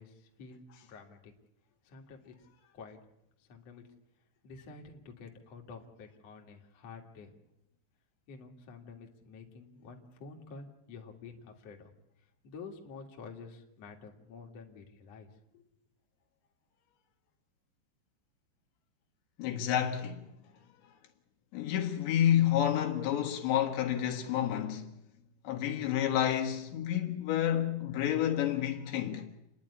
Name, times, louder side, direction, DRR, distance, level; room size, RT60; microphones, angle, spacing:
voice 1, 0.0-1.3 1.8-2.3 2.7-3.0 3.4-3.8 4.4-7.3 8.3-11.9 12.4-15.3 15.5-15.6, left 4 dB, 45° left, 2.5 m, -49 dB
voice 2, 19.4-20.3 21.5-24.9 25.5-29.3, left 10 dB, 75° left, 3.7 m, -29 dB
29.5 x 10.5 x 9.8 m
omnidirectional pair, 5.3 m